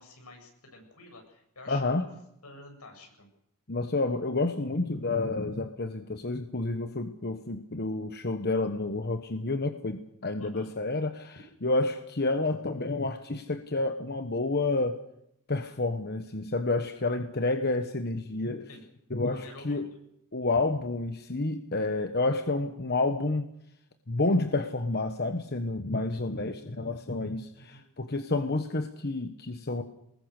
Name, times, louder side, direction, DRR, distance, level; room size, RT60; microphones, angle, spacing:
voice 1, 0.0-2.1 2.4-3.3 10.4-10.7 18.7-18.8 19.2-19.8 26.1-26.2 27.7-27.8, left 2 dB, 85° left, 3 dB, 7.4 m, -49 dB
voice 2, 1.7-2.1 3.7-15.0 15.5-18.7 19.1-19.9 20.3-23.5 24.1-29.8, left 2 dB, 45° left, 7 dB, 1.3 m, -29 dB
24.0 x 20.5 x 6.7 m, 0.74 s
head